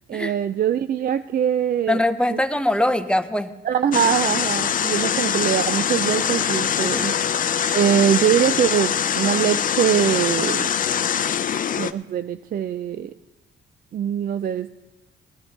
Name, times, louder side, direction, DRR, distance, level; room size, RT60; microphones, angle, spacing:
voice 1, 0.1-2.0 2.3-2.4 3.7-7.1 7.7-10.7 11.8-13.1 13.9-14.7, right 9 dB, 45° right, 12 dB, 0.4 m, -22 dB
voice 2, 1.9-3.5 6.8-7.1, left 1 dB, 5° left, 9 dB, 0.7 m, -22 dB
sound 1, 3.9-11.9, left 8 dB, 45° left, 0.5 m, -23 dB
19.0 x 11.5 x 3.3 m, 1.1 s
cardioid pair, 90°, 20 cm